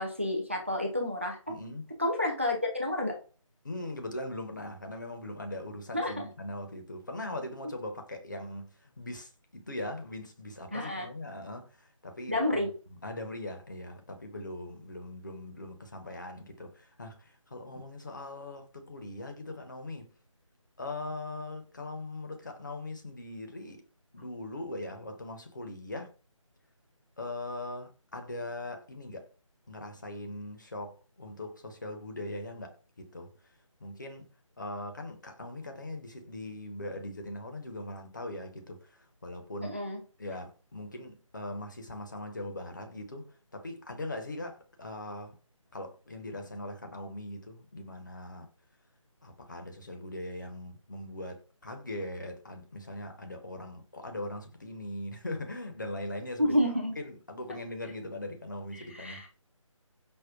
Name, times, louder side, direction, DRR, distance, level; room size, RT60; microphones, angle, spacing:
voice 1, 0.0-1.5 2.0-3.1 5.9-6.2 10.7-11.1 12.3-12.7 17.7-17.8 39.6-40.0 56.4-57.0 58.7-59.3, left 1 dB, 25° right, 0.3 m, -30 dB
voice 2, 1.5-1.8 3.6-12.4 12.6-12.7 13.0-20.1 20.8-23.8 24.1-26.1 27.2-29.3 29.7-33.3 33.8-34.3 34.6-39.8 40.2-45.4 45.7-48.5 49.2-56.6 57.0-59.2, left 1 dB, 35° left, 0.5 m, -40 dB
5.1 x 2.1 x 2.3 m
figure-of-eight pair, 155°, 17 cm